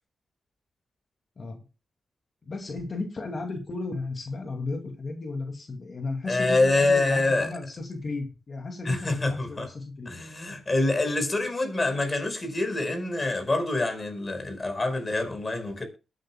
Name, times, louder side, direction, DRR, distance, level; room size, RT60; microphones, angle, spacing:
voice 1, 2.4-10.1, left 3 dB, 50° left, 2.6 m, -34 dB
voice 2, 6.3-7.5 8.8-9.7 10.0-15.8, left 2 dB, 30° left, 5.1 m, -26 dB
21.5 x 9.3 x 2.3 m
cardioid pair, 60°, 0 cm